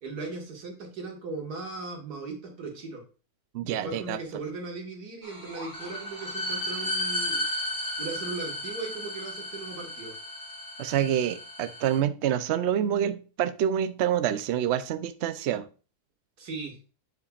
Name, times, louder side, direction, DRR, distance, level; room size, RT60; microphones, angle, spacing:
voice 1, 0.0-3.0 3.6-7.4 8.0-10.1 16.4-16.8, right 3 dB, 85° right, 1 dB, 2.4 m, -38 dB
voice 2, 3.5-4.2 10.8-15.7, right 10 dB, 65° right, 12 dB, 0.7 m, -27 dB
sound 1, 5.2-12.0, left 1 dB, 30° left, 2.0 m, -34 dB
8.2 x 6.9 x 2.4 m, 0.34 s
omnidirectional pair, 1.6 m